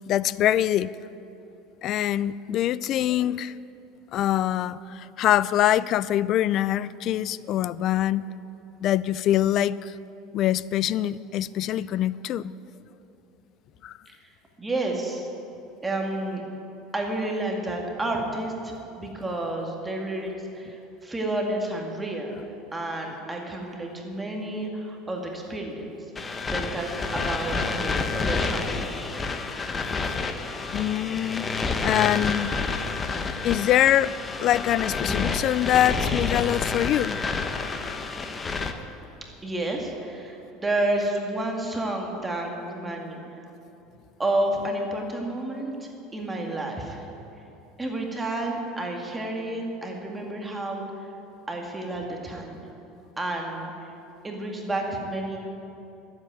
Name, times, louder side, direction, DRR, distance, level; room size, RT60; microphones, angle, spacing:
voice 1, 0.1-0.9 1.8-3.5 4.1-8.3 8.8-9.9 10.3-12.5 13.8-14.0 30.7-31.4 31.8-32.6 33.4-34.1 34.4-37.2 37.8-38.0, left 12 dB, 50° left, 19 dB, 0.4 m, -24 dB
voice 2, 14.6-15.3 15.8-16.4 16.9-22.4 22.7-26.0 26.5-28.9 39.4-43.2 44.2-47.1 47.8-50.8 51.5-52.6 53.2-53.7 54.2-55.4, right 1 dB, 15° right, 1 dB, 1.9 m, -30 dB
sound 1, 26.1-38.7, left 4 dB, 20° left, 0.9 m, -29 dB
12.5 x 8.0 x 9.0 m, 2.9 s
supercardioid pair, 115°, 0 cm